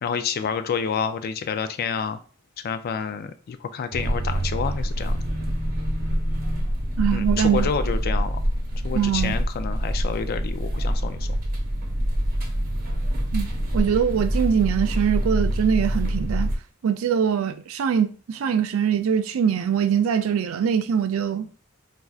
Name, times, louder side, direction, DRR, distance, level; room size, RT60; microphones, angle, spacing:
voice 1, 0.0-2.2 2.6-5.2 7.1-8.4 8.8-11.3, left 6 dB, 50° left, 0.3 m, -29 dB
sound 1, 3.9-16.6, equal, 45° right, 0.9 m, -26 dB
voice 2, 7.0-7.7 8.9-9.3 13.3-16.5 16.8-21.5, right 8 dB, 80° right, 0.3 m, -23 dB
4.3 x 2.5 x 2.3 m
head